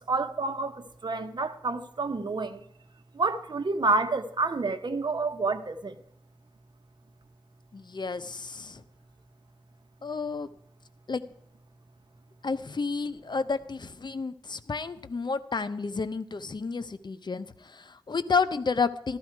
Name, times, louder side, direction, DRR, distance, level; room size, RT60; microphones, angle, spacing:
voice 1, 0.1-2.6 3.1-6.0, right 3 dB, 65° right, 1.3 m, -29 dB
voice 2, 7.7-8.8 10.0-10.5 11.1-11.2 12.4-19.2, left 4 dB, 65° left, 0.9 m, -31 dB
14.5 x 13.0 x 4.6 m
wide cardioid pair, 65°, 8 cm